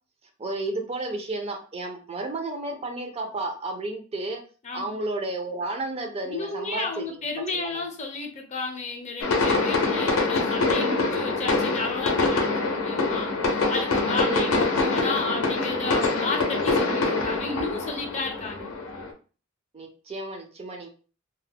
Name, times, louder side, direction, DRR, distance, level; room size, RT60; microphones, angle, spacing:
voice 1, 0.4-4.4 4.7-7.2 7.5-7.8 10.7-11.2 14.2-14.6 19.7-20.9, right 2 dB, 30° right, 4 dB, 0.4 m, -32 dB
voice 2, 4.6-5.0 6.2-18.7, left 3 dB, 35° left, 3 dB, 0.5 m, -32 dB
sound 1, 9.2-19.1, left 3 dB, 85° left, 0.5 m, -25 dB
2.2 x 2.0 x 3.4 m, 0.38 s
head